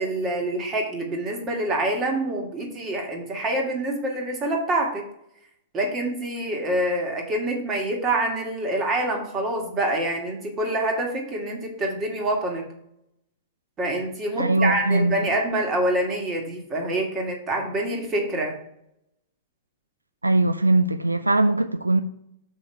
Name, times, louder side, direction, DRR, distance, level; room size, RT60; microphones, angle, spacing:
voice 1, 0.0-5.1 5.7-12.7 13.8-18.5, right 1 dB, 25° right, 1 dB, 1.9 m, -26 dB
voice 2, 14.4-15.1 20.2-22.0, right 2 dB, 85° right, 11 dB, 0.4 m, -20 dB
6.8 x 5.5 x 4.6 m, 0.75 s
figure-of-eight pair, 100°, 0 cm